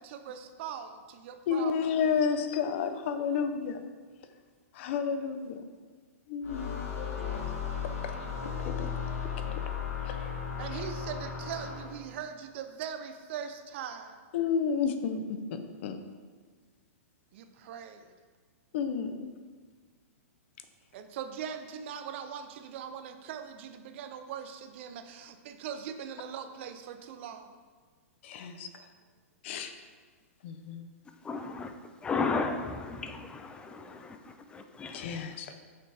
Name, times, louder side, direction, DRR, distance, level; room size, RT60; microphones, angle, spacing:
voice 1, 0.0-1.7 10.6-14.2 17.3-18.1 20.9-27.5 28.6-28.7, right 8 dB, 50° right, 8 dB, 0.7 m, -41 dB
voice 2, 1.5-3.8 4.7-5.7 6.3-6.7 7.0-8.2 8.4-8.9 9.2-9.6 10.0-10.4 10.7-10.8 14.3-16.0 18.7-19.3 28.2-28.9 29.4-29.7 30.4-30.9 34.9-35.5, left 6 dB, 55° left, 8 dB, 0.7 m, -32 dB
sound 1, 6.4-12.1, left 7 dB, 75° left, 1.4 m, -35 dB
voice 3, 31.2-31.7 32.0-35.1, left 4 dB, 10° left, 7 dB, 0.5 m, -34 dB
7.5 x 5.8 x 3.5 m, 1.5 s
hypercardioid pair, 140°, 8 cm